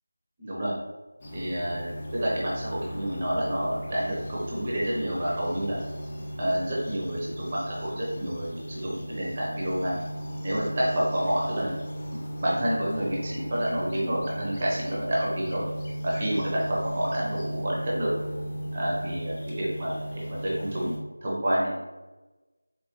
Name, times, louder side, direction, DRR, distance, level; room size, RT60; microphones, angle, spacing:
voice 1, 0.4-0.7 1.3-5.8 6.4-10.0 10.4-11.7 12.4-15.6 16.0-18.1 18.7-21.8, equal, 30° right, -6 dB, 0.8 m, -29 dB
sound 1, 1.2-21.0, equal, 20° left, 0.6 m, -36 dB
4.3 x 2.1 x 3.2 m, 1.1 s
figure-of-eight pair, 170°, 0 cm